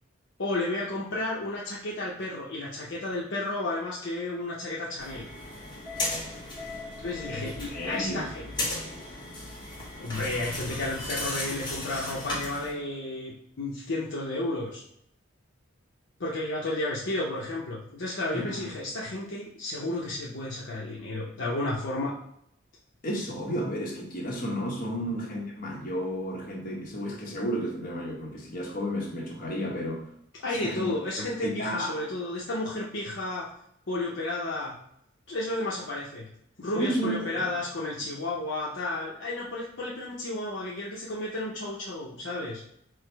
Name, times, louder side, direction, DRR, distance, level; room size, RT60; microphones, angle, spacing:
voice 1, 0.4-5.3 7.0-8.8 10.0-14.8 16.2-22.2 25.0-25.1 30.4-33.5 33.9-34.7 35.3-36.3 36.6-42.6, left 2 dB, 65° left, -5 dB, 0.7 m, -32 dB
sound 1, 5.0-12.7, left 2 dB, 20° left, 1.1 m, -36 dB
voice 2, 7.3-8.3 18.3-18.7 23.0-30.1 30.6-30.9 31.2-31.9 36.7-37.5, equal, 45° left, -3 dB, 1.1 m, -32 dB
4.8 x 2.0 x 4.5 m, 0.71 s
head